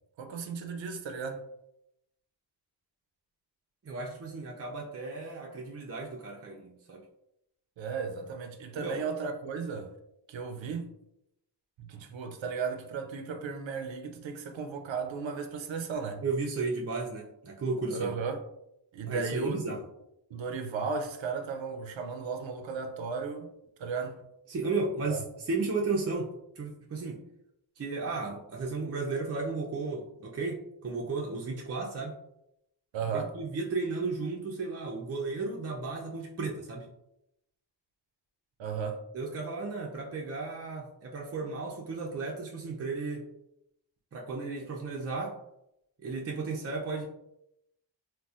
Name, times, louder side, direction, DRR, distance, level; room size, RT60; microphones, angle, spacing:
voice 1, 0.2-1.4 7.8-9.9 10.3-10.9 11.8-16.2 17.9-18.4 18.9-19.8 20.3-23.5 23.8-24.2 25.1-25.2 32.9-33.3 38.6-39.0, right 5 dB, 85° right, 0.6 m, -35 dB
voice 2, 3.8-7.0 8.7-9.0 16.2-18.1 19.1-19.8 24.5-26.3 26.6-27.2 27.8-32.2 33.1-36.9 39.1-43.3 44.1-45.4 46.0-47.1, right 3 dB, 35° right, 0.5 m, -34 dB
4.0 x 2.2 x 2.4 m
wide cardioid pair, 90°, 44 cm